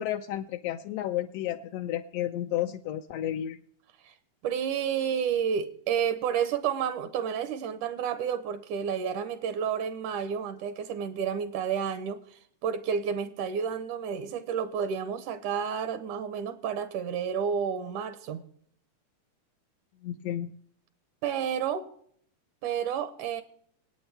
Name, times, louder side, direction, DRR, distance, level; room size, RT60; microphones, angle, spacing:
voice 1, 0.0-3.6 20.0-20.5, left 12 dB, 85° left, 6 dB, 1.4 m, -32 dB
voice 2, 4.4-18.4 21.2-21.9 22.6-23.4, right 7 dB, 80° right, 11 dB, 2.3 m, -30 dB
26.0 x 9.0 x 3.4 m, 0.64 s
omnidirectional pair, 3.6 m